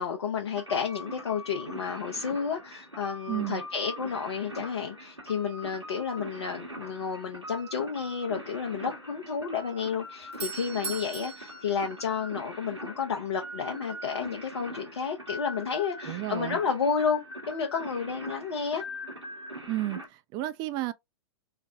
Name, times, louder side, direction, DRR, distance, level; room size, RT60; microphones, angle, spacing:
voice 1, 0.0-18.8, left 6 dB, 65° left, 0.7 m, -31 dB
sound 1, 0.5-20.1, equal, 90° right, 1.4 m, -42 dB
voice 2, 3.3-3.6 16.1-16.6 19.7-20.9, right 15 dB, 30° right, 0.4 m, -32 dB
Doorbell, 10.0-12.8, right 5 dB, 70° right, 0.7 m, -40 dB
3.3 x 2.1 x 3.4 m
figure-of-eight pair, 105°, 14 cm